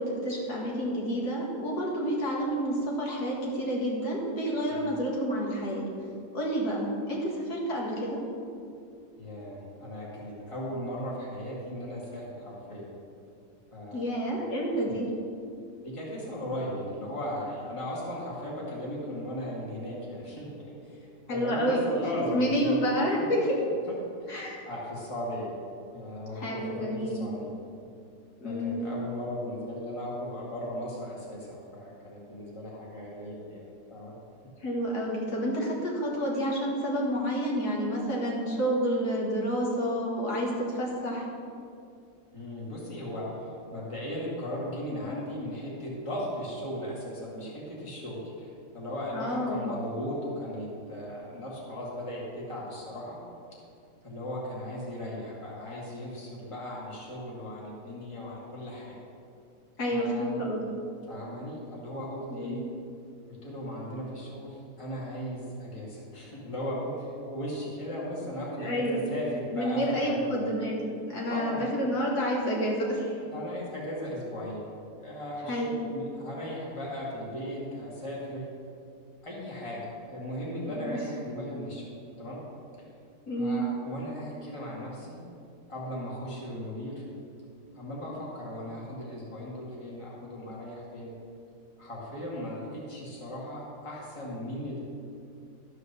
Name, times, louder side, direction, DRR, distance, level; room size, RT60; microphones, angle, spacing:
voice 1, 0.0-5.8 6.3-8.2 13.9-15.1 21.3-23.6 24.3-24.6 26.3-27.2 28.4-28.9 34.6-41.3 49.1-49.7 59.8-60.7 62.3-62.7 68.6-69.1 69.5-73.2 75.4-75.8 80.7-81.0 83.3-83.6, equal, 65° left, -3 dB, 2.4 m, -29 dB
voice 2, 9.2-12.9 13.7-14.2 14.8-15.0 15.8-22.8 23.8-23.9 24.2-24.3 24.7-25.5 25.9-27.5 28.4-33.6 33.9-34.1 42.3-48.5 48.7-53.2 54.0-59.0 59.9-60.4 61.1-62.6 63.3-70.4 71.3-71.6 73.3-74.7 75.0-78.5 79.2-82.4 83.4-85.2 85.7-87.0 87.7-91.1 91.8-94.8, equal, 20° left, -5 dB, 2.1 m, -37 dB
12.0 x 4.8 x 6.8 m, 2.5 s
omnidirectional pair, 1.8 m